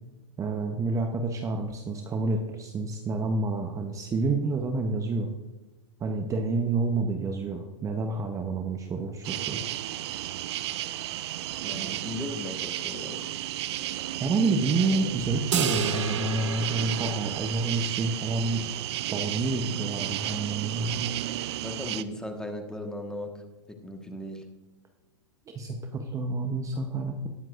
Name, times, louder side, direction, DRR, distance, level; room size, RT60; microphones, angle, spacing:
voice 1, 0.4-5.3 6.0-9.6 14.2-18.6 19.1-21.1 25.5-27.3, right 3 dB, 20° right, 5 dB, 0.9 m, -28 dB
sound 1, 9.2-22.0, right 14 dB, 60° right, 0.5 m, -33 dB
voice 2, 11.6-13.3 21.5-24.4, left 1 dB, 5° left, 4 dB, 1.4 m, -37 dB
sound 2, 15.5-18.1, right 7 dB, 75° right, 1.1 m, -32 dB
19.0 x 7.4 x 2.5 m, 1.2 s
hypercardioid pair, 115°, 15 cm